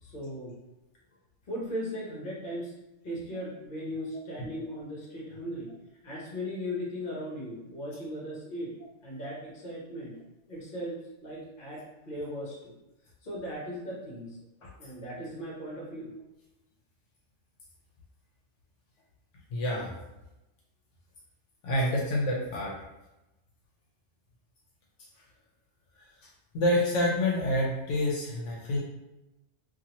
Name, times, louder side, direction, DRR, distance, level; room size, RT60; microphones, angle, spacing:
voice 1, 0.0-0.6 1.5-2.7 3.0-5.7 6.0-10.2 10.5-12.7 13.2-14.4 14.8-16.1, equal, 45° left, -4 dB, 1.0 m, -38 dB
voice 2, 19.5-19.9 21.6-22.7 26.2-26.3 26.5-28.8, left 1 dB, 80° left, -3 dB, 1.0 m, -27 dB
2.8 x 2.5 x 2.8 m, 0.98 s
omnidirectional pair, 1.3 m